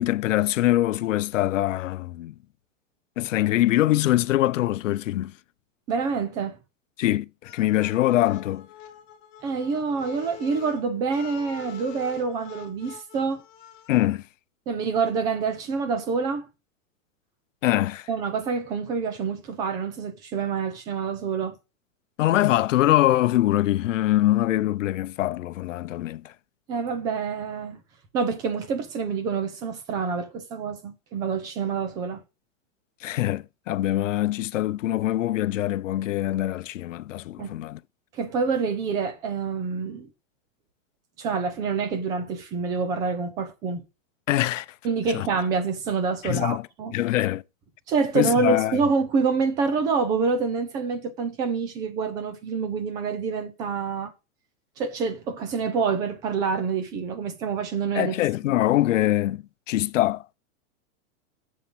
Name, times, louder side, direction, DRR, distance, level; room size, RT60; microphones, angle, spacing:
voice 1, 0.0-2.3 3.2-5.3 7.0-8.7 13.9-14.2 17.6-18.1 22.2-26.3 33.0-37.8 44.3-44.7 45.1-45.3 46.2-46.6 46.9-47.4 48.1-48.8 57.9-60.2, left 14 dB, 70° left, 0.8 m, -23 dB
voice 2, 5.9-6.6 9.4-13.4 14.7-16.5 18.1-21.5 26.7-27.8 28.1-32.2 37.4-37.5 38.1-40.1 41.2-43.8 44.8-47.0 47.9-54.1 54.8-58.1, right 5 dB, 10° right, 0.5 m, -27 dB
sound 1, 7.4-14.1, left 9 dB, 35° left, 2.0 m, -45 dB
7.7 x 7.3 x 6.9 m
supercardioid pair, 180°, 40 cm